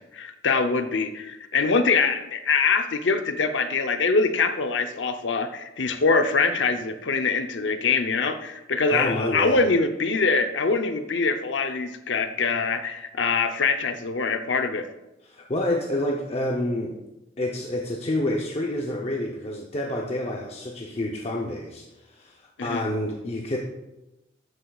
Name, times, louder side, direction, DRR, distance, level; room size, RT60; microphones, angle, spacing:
voice 1, 0.1-14.9 22.6-22.8, left 4 dB, 90° left, 8 dB, 0.7 m, -24 dB
voice 2, 8.9-9.6 15.2-17.0 17.4-23.6, left 1 dB, 35° left, -1 dB, 0.8 m, -28 dB
12.0 x 8.1 x 2.4 m, 0.97 s
head